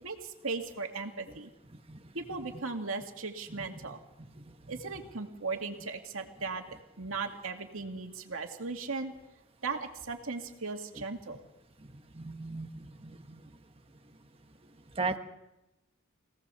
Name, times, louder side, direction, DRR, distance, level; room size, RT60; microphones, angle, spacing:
voice 1, 0.0-1.5 2.1-4.0 4.7-6.6 7.0-9.1 9.6-11.4, right 4 dB, 80° right, 3 dB, 2.4 m, -37 dB
voice 2, 12.1-13.4 15.0-15.2, right 3 dB, 25° right, 7 dB, 1.3 m, -36 dB
25.5 x 17.5 x 7.0 m, 0.97 s
head